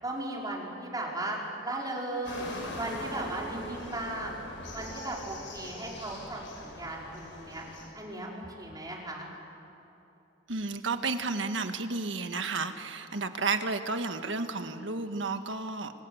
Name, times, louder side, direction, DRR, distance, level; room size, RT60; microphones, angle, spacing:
voice 1, 0.0-2.5 2.8-4.4 4.7-7.6 7.9-9.3, right 1 dB, 20° right, -2 dB, 5.2 m, -36 dB
sound 1, 2.2-7.8, left 1 dB, 75° left, 7.0 m, -42 dB
voice 2, 10.5-15.9, right 3 dB, 75° right, 7 dB, 1.6 m, -32 dB
27.0 x 26.5 x 8.0 m, 2.9 s
head